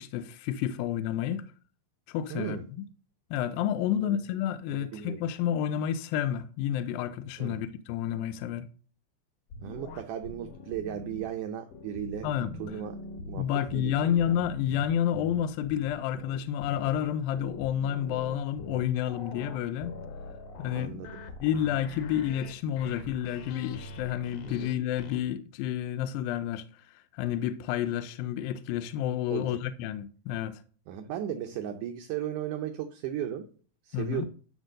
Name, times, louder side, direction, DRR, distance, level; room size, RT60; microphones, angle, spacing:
voice 1, 0.0-1.5 2.1-2.6 3.3-8.7 12.2-12.5 13.4-20.0 20.6-21.0 21.4-30.6 33.9-34.3, left 10 dB, 85° left, 2.3 m, -30 dB
voice 2, 2.3-2.6 4.0-4.2 4.7-5.2 7.4-7.6 9.6-12.3 12.6-13.0 13.3-14.2 20.8-21.2 24.4-24.7 29.3-29.6 30.9-33.5 33.8-34.3, right 10 dB, 75° right, 2.1 m, -36 dB
sound 1, 9.5-11.2 11.7-25.2, left 2 dB, 60° left, 1.8 m, -43 dB
11.5 x 4.4 x 6.4 m
omnidirectional pair, 4.0 m